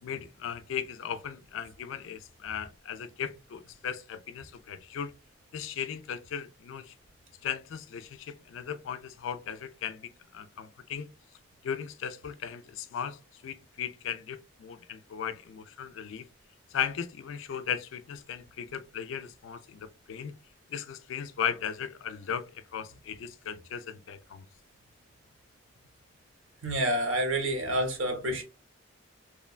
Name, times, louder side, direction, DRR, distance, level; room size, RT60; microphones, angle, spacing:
voice 1, 0.0-5.1 5.5-6.9 7.4-11.1 11.6-16.3 16.7-20.3 20.7-24.4, left 8 dB, 70° left, 0.3 m, -37 dB
voice 2, 26.6-28.4, right 1 dB, 75° right, 0.8 m, -28 dB
3.0 x 2.2 x 2.3 m
head